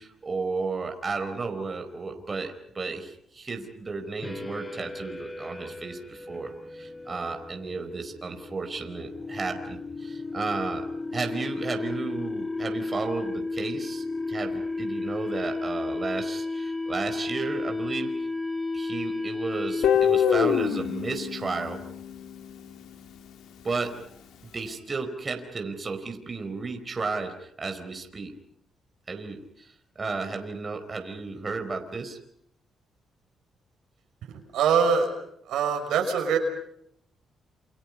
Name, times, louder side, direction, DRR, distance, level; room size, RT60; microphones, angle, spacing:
voice 1, 0.0-10.9 11.1-18.2 18.7-21.8 23.6-24.0 24.5-28.4 29.1-32.2, right 4 dB, 35° right, 5 dB, 4.7 m, -33 dB
sound 1, 4.2-20.2, left 3 dB, 20° left, 3.3 m, -33 dB
Guitar, 19.8-22.8, left 8 dB, 85° left, 2.5 m, -25 dB
voice 2, 34.5-35.1 35.5-36.4, right 6 dB, 85° right, 4 dB, 5.8 m, -23 dB
29.0 x 29.0 x 5.5 m, 0.71 s
cardioid pair, 90°, 0 cm